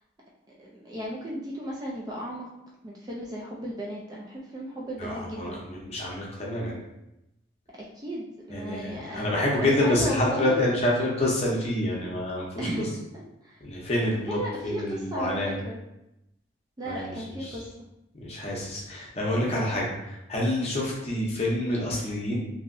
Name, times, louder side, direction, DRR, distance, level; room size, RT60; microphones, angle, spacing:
voice 1, 0.5-2.5 2.8-5.6 7.9-10.6 12.6-12.9 13.4-13.6 14.3-15.8 16.8-17.9, equal, 20° right, -3 dB, 0.3 m, -35 dB
voice 2, 5.0-6.8 8.5-12.7 13.6-15.6 16.9-17.1 17.4-17.6 18.2-22.4, left 1 dB, 35° left, -3 dB, 0.7 m, -27 dB
2.9 x 2.6 x 2.6 m, 0.88 s
head